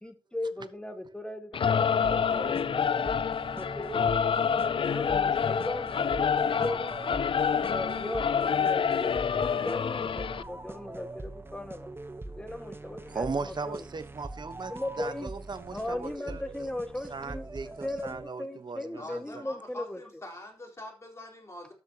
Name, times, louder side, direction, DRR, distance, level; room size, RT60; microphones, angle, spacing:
voice 1, 0.0-2.8 3.6-4.0 4.8-6.9 7.6-11.9 12.3-13.8 14.7-15.3 15.7-17.5 17.8-20.0, left 1 dB, 10° left, 1.7 m, -37 dB
Singing / Musical instrument, 1.5-10.4, left 7 dB, 65° left, 0.5 m, -27 dB
sound 1, 2.0-18.5, right 2 dB, 25° right, 1.0 m, -43 dB
voice 2, 13.1-16.6 17.1-19.4, right 4 dB, 50° right, 1.1 m, -38 dB
voice 3, 19.0-21.7, left 1 dB, 30° left, 4.1 m, -44 dB
13.0 x 8.1 x 2.9 m
wide cardioid pair, 115°, 10 cm